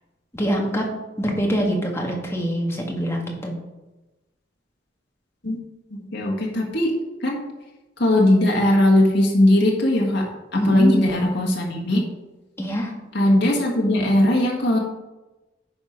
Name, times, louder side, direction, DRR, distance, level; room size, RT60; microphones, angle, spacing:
voice 1, 0.3-0.8 1.2-3.6 10.5-11.0 12.6-12.9, equal, 15° left, 0 dB, 1.6 m, -24 dB
voice 2, 6.1-7.5 8.0-12.1 13.1-14.8, left 1 dB, 65° left, -1 dB, 1.8 m, -19 dB
10.5 x 4.5 x 5.4 m, 1.1 s
head